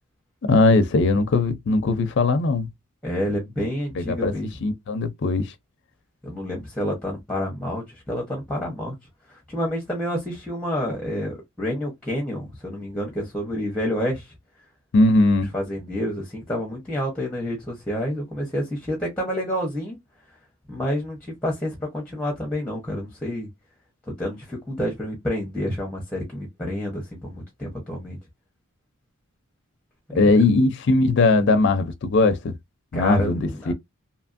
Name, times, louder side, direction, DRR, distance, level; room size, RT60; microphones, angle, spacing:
voice 1, 0.4-2.7 3.9-4.3 4.6-5.5 14.9-15.5 30.2-32.5 32.9-33.7, left 3 dB, 55° left, 0.4 m, -19 dB
voice 2, 3.0-4.5 6.2-8.9 9.3-14.3 15.5-20.0 20.7-23.5 24.1-28.2 30.1-30.3 32.9-33.7, equal, 5° left, 0.8 m, -29 dB
2.7 x 2.5 x 2.5 m
head